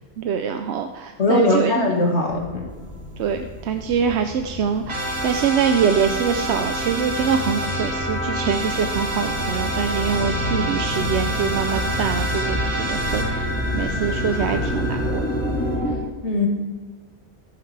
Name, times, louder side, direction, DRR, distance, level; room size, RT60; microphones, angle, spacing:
voice 1, 0.2-1.9 3.2-15.2, right 7 dB, 90° right, 6 dB, 0.9 m, -24 dB
voice 2, 1.2-2.7 16.2-16.5, left 2 dB, 85° left, 0 dB, 2.0 m, -20 dB
sound 1, 2.3-15.9, equal, 10° left, 2.8 m, -29 dB
sound 2, 4.9-15.7, right 1 dB, 50° right, 2.4 m, -28 dB
14.0 x 9.9 x 3.3 m, 1.4 s
omnidirectional pair, 1.1 m